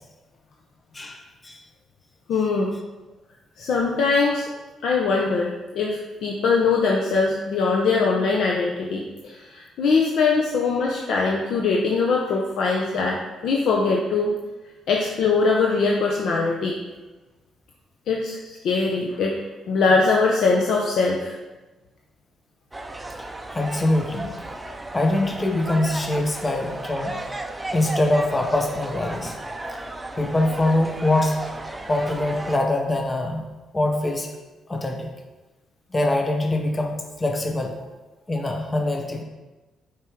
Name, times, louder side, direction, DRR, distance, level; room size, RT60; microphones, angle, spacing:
voice 1, 0.9-1.6 23.5-24.3 24.9-27.2 27.7-29.3 29.7-29.8 30.2-31.4 31.9-33.4 33.7-34.3 34.7-35.1 35.9-37.7 38.3-39.2, left 1 dB, 20° left, 2 dB, 0.8 m, -23 dB
voice 2, 2.3-2.7 3.6-4.5 4.8-14.3 14.9-16.8 18.1-19.4 19.7-21.4, left 4 dB, 70° left, -1 dB, 0.7 m, -22 dB
sound 1, 22.7-32.6, right 2 dB, 15° right, 0.5 m, -34 dB
5.7 x 4.8 x 4.6 m, 1.2 s
cardioid pair, 90°, 0 cm